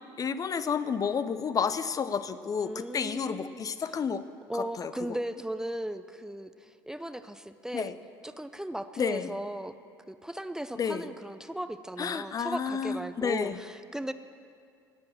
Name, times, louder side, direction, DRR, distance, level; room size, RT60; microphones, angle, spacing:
voice 1, 0.2-4.2 4.6-4.9 7.7-7.9 9.0-9.3 10.7-11.1 12.0-13.6, left 6 dB, 30° left, 13 dB, 0.6 m, -31 dB
voice 2, 2.7-3.6 4.5-7.9 8.2-9.7 10.1-14.1, right 1 dB, 5° right, 11 dB, 0.6 m, -37 dB
18.5 x 7.7 x 7.2 m, 2.3 s
hypercardioid pair, 65°, 11 cm